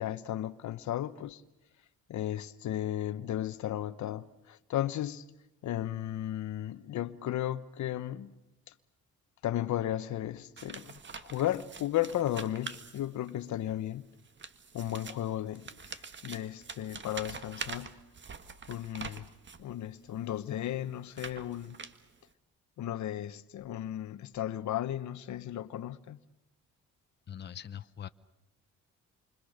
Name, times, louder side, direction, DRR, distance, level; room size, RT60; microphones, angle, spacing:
voice 1, 0.0-1.4 2.1-5.2 5.6-8.3 9.4-14.1 14.7-18.0 18.7-19.3 19.6-21.8 22.8-26.2, left 12 dB, 70° left, 1.1 m, -35 dB
sound 1, 10.6-13.5 14.2-19.7 20.3-22.3, right 5 dB, 40° right, 1.8 m, -45 dB
voice 2, 27.3-28.1, left 9 dB, 35° left, 0.8 m, -42 dB
29.0 x 25.0 x 6.6 m
cardioid pair, 90°, 30 cm